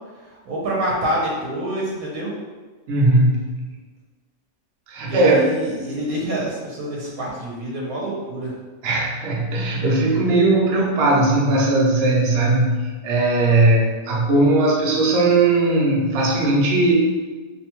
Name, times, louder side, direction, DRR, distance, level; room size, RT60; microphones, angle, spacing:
voice 1, 0.3-2.3 5.0-8.5, right 1 dB, 80° right, -4 dB, 1.1 m, -26 dB
voice 2, 2.9-3.7 4.9-5.4 8.8-16.9, right 2 dB, 60° right, -3 dB, 0.7 m, -18 dB
2.7 x 2.2 x 2.9 m, 1.3 s
omnidirectional pair, 1.5 m